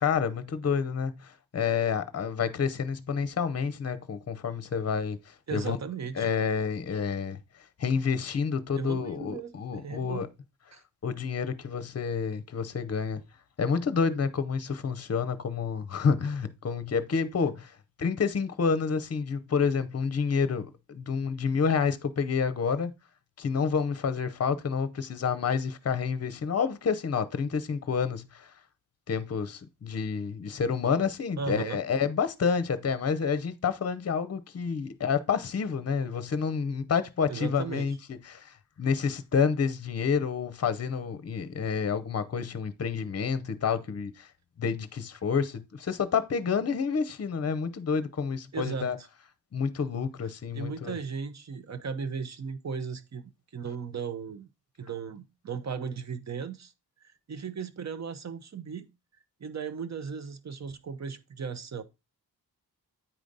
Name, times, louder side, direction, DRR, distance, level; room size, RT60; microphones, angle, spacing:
voice 1, 0.0-5.8 6.2-7.4 7.8-10.3 11.0-13.2 13.6-17.7 18.0-22.9 23.4-28.5 29.1-44.3 44.6-49.0 49.5-51.0, left 6 dB, 40° left, 0.7 m, -29 dB
voice 2, 5.5-6.3 8.7-10.2 10.7-10.8 31.4-31.8 37.3-37.9 48.5-49.1 50.5-54.5 54.8-56.7 57.0-58.9 59.4-61.8, right 6 dB, 45° right, 0.8 m, -36 dB
8.9 x 5.0 x 3.9 m
wide cardioid pair, 180°, 39 cm